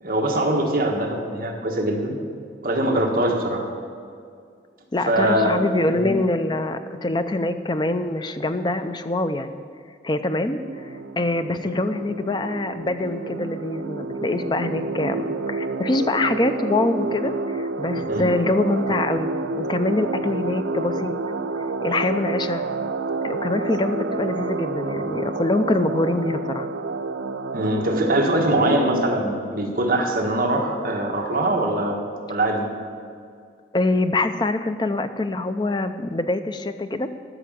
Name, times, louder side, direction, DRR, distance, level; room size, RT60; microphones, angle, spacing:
voice 1, 0.0-2.2 2.6-3.6 5.1-5.6 5.9-6.1 18.1-18.3 27.5-32.0 32.3-32.7, right 1 dB, 45° right, 0 dB, 1.5 m, -22 dB
voice 2, 4.9-9.6 10.0-19.3 19.6-21.1 21.8-22.6 23.2-26.7 33.7-37.1, left 2 dB, 25° left, 9 dB, 0.5 m, -24 dB
sound 1, 10.5-29.0, right 3 dB, 80° right, 0.5 m, -29 dB
13.0 x 6.1 x 7.5 m, 2.3 s
head